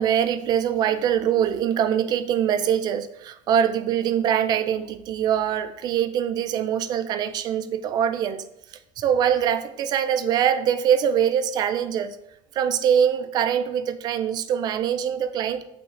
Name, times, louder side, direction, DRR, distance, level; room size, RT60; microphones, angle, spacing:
voice 1, 0.0-8.4 9.0-12.2 12.5-15.6, right 9 dB, 30° right, 12 dB, 0.3 m, -23 dB
7.8 x 5.7 x 3.7 m, 0.79 s
cardioid pair, 170°, 15 cm